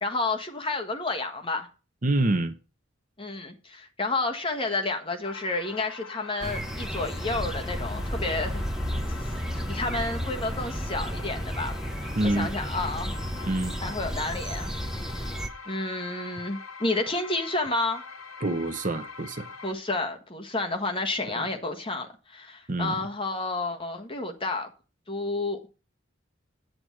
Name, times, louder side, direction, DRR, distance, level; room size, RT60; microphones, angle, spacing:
voice 1, 0.0-1.7 3.2-8.5 9.7-11.7 12.0-13.2 13.8-14.7 15.7-18.0 19.6-24.7 25.1-25.6, left 2 dB, 25° left, 1.4 m, -30 dB
voice 2, 2.0-2.5 12.2-12.5 13.4-13.7 18.4-19.5 21.3-21.5 22.7-22.9, right 2 dB, 40° right, 0.9 m, -26 dB
sound 1, 5.2-19.7, left 4 dB, 90° left, 1.1 m, -44 dB
sound 2, 6.4-15.5, equal, 5° right, 0.9 m, -32 dB
8.9 x 8.0 x 4.5 m
head